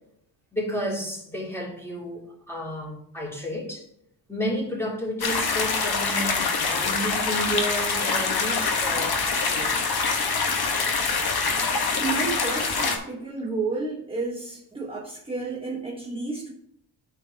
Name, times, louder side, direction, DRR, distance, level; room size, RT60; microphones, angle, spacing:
voice 1, 0.5-3.9 4.3-10.0, equal, 5° left, -4 dB, 3.0 m, -32 dB
sound 1, 5.2-13.0, left 4 dB, 55° left, 1.3 m, -25 dB
voice 2, 12.0-16.5, right 3 dB, 10° right, -1 dB, 1.0 m, -31 dB
12.0 x 4.6 x 2.8 m, 0.75 s
cardioid pair, 100°, 45 cm